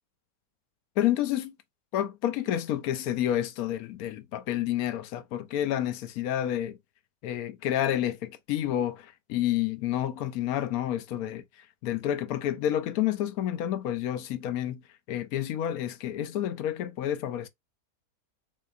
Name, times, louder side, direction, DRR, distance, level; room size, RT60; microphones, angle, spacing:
voice 1, 1.0-1.5 1.9-6.8 7.2-11.4 11.8-14.8 15.1-17.5, left 11 dB, 70° left, 1.0 m, -29 dB
4.1 x 3.7 x 2.4 m
omnidirectional pair, 1.7 m